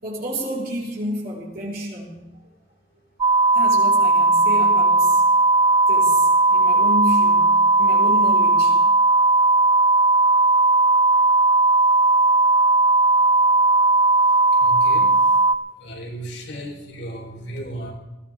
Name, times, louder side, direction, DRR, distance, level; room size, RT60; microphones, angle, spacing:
voice 1, 0.0-2.2 3.5-5.2 5.9-8.7 11.1-11.2, right 1 dB, 60° right, -4 dB, 5.2 m, -30 dB
sound 1, 3.2-15.6, right 3 dB, 25° right, 0.5 m, -17 dB
voice 2, 14.6-15.3 15.8-17.9, right 1 dB, 80° left, 0 dB, 4.3 m, -35 dB
20.5 x 16.0 x 3.7 m, 1.0 s
head